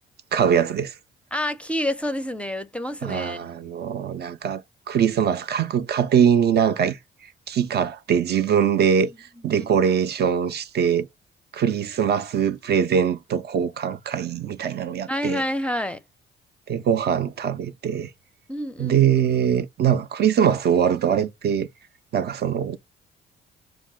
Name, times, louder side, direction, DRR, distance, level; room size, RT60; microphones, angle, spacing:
voice 1, 0.3-0.9 3.0-4.6 4.9-7.0 7.5-11.1 11.5-15.4 16.7-18.1 18.8-21.7 22.1-22.8, right 8 dB, 55° right, 0.4 m, -22 dB
voice 2, 1.3-3.6 9.0-9.1 9.4-9.7 15.1-16.0 18.5-19.1, left 1 dB, 5° left, 0.5 m, -28 dB
4.7 x 2.2 x 3.6 m
cardioid pair, 90°, 20 cm